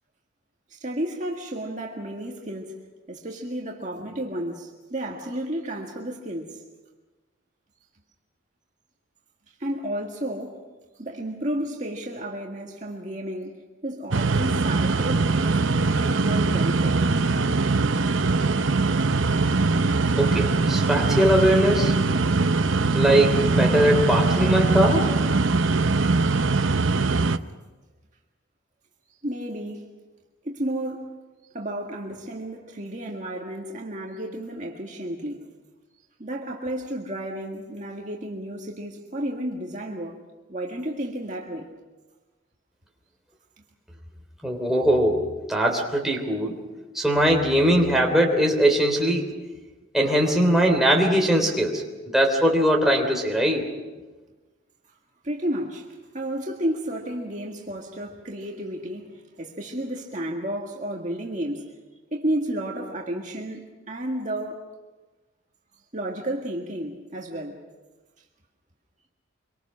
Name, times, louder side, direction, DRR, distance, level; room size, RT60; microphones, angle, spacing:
voice 1, 0.7-2.8 3.1-6.6 9.6-10.6 11.0-17.1 29.2-29.9 30.4-31.1 31.5-35.5 36.2-40.2 40.5-41.7 55.2-61.7 62.1-64.7 65.9-67.6, right 1 dB, 35° right, 1.9 m, -32 dB
sound 1, 14.1-27.4, right 3 dB, 70° right, 0.8 m, -22 dB
voice 2, 20.2-22.0 22.9-25.1 25.5-25.6 44.4-46.6 46.9-49.3 49.9-51.8 52.1-53.7, equal, ahead, 3.2 m, -21 dB
25.5 x 24.0 x 6.4 m
head